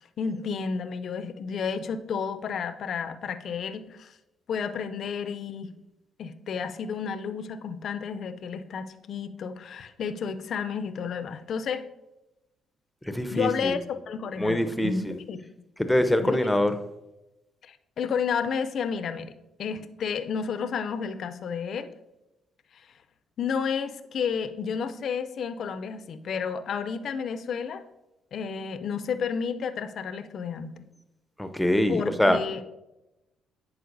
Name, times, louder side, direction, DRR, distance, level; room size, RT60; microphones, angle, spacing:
voice 1, 0.2-4.1 4.5-5.7 6.2-11.8 13.3-15.4 16.2-16.5 17.6-19.3 19.6-21.9 23.4-27.8 28.3-30.7 31.9-32.6, left 6 dB, 65° left, 11 dB, 0.4 m, -31 dB
voice 2, 13.1-13.7 14.4-15.1 15.8-16.7 31.4-32.4, left 1 dB, 5° left, 9 dB, 0.6 m, -24 dB
10.0 x 4.4 x 2.6 m, 0.96 s
supercardioid pair, 55°, 0 cm